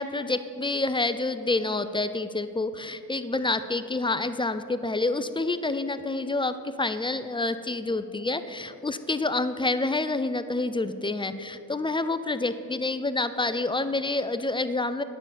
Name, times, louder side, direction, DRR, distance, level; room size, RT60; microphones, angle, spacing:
voice 1, 0.0-15.0, left 2 dB, 15° left, 11 dB, 0.3 m, -28 dB
9.6 x 5.5 x 8.2 m, 2.7 s
cardioid pair, 100°, 38 cm